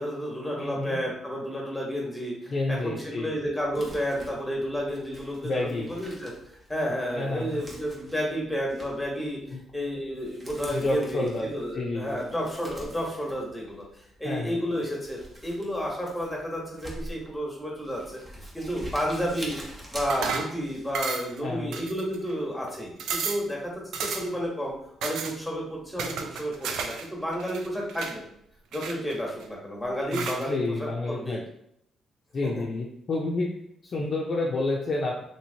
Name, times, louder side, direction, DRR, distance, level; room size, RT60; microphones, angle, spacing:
voice 1, 0.0-6.3 6.7-9.4 9.7-13.8 14.2-19.6 19.9-24.7 25.0-28.2 28.7-31.4 32.4-32.6, equal, 5° left, -3 dB, 1.1 m, -31 dB
voice 2, 0.6-1.0 2.5-3.3 5.4-5.9 7.2-7.6 9.5-9.6 10.7-11.5 11.7-12.2 14.2-14.5 21.4-21.8 30.1-31.4 32.3-33.5 33.8-35.2, left 2 dB, 45° left, -3 dB, 0.5 m, -29 dB
Crumpling crinkling, 3.6-21.0, equal, 30° right, 0.8 m, -46 dB
sound 1, 20.1-20.6 20.9-21.4 21.7-22.3 22.7-22.8 23.0-23.5 23.9-24.4 25.0-25.4 26.0-27.1 27.3-28.2 28.7-29.4 30.1-30.4, right 5 dB, 80° right, 0.3 m, -32 dB
3.0 x 2.9 x 2.7 m, 0.73 s
cardioid pair, 90°, 0 cm